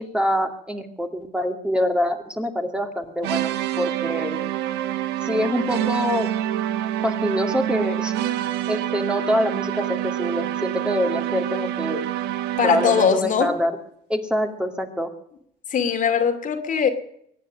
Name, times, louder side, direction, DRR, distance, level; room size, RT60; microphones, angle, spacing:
voice 1, 0.0-3.5 3.8-4.4 5.2-6.3 7.0-8.1 8.7-12.0 12.6-13.8 14.1-15.1, equal, 5° right, 4 dB, 2.4 m, -25 dB
sound 1, 3.2-13.3, right 12 dB, 80° right, 1.2 m, -27 dB
voice 2, 12.6-13.5 15.7-16.9, left 7 dB, 50° left, 6 dB, 2.5 m, -20 dB
23.0 x 9.4 x 6.4 m, 0.71 s
cardioid pair, 110°, 17 cm